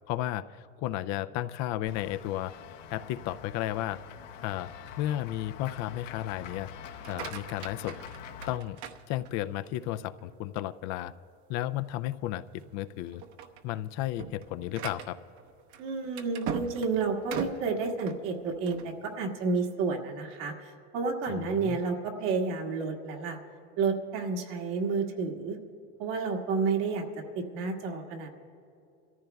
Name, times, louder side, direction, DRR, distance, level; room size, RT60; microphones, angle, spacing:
voice 1, 0.1-2.5 2.9-4.0 4.4-6.7 7.1-8.0 8.5-8.8 9.1-11.1 11.5-12.4 12.7-13.2 13.6-15.2 21.4-21.8, left 13 dB, 50° left, 12 dB, 0.4 m, -33 dB
Run / Walk footsteps / Bell, 1.9-8.6, left 8 dB, 85° left, 1.1 m, -45 dB
sound 1, 6.9-9.7 10.2-10.6 11.1-11.2 11.6-11.8 12.4-12.7 13.1-18.9, right 7 dB, 55° right, 1.0 m, -40 dB
voice 2, 15.8-23.4 23.8-25.6 26.0-27.0 27.4-28.3, right 4 dB, 70° right, 1 dB, 1.9 m, -30 dB
25.0 x 14.0 x 2.3 m, 2.6 s
supercardioid pair, 110°, 36 cm